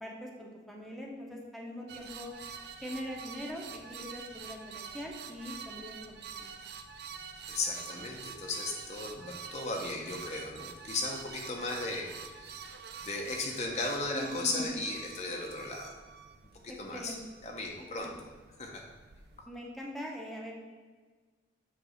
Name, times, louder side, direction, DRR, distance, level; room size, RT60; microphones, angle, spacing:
voice 1, 0.0-2.3 2.8-6.5 14.1-14.8 16.7-17.2 18.0-18.1 19.4-20.5, left 1 dB, ahead, -2 dB, 1.0 m, -42 dB
sound 1, 1.9-19.5, right 6 dB, 65° right, 0.6 m, -47 dB
voice 2, 7.5-12.8 13.0-15.9 16.6-17.2 17.4-18.1 18.6-18.8, left 2 dB, 40° left, 0 dB, 0.8 m, -36 dB
7.9 x 3.3 x 6.5 m, 1.4 s
head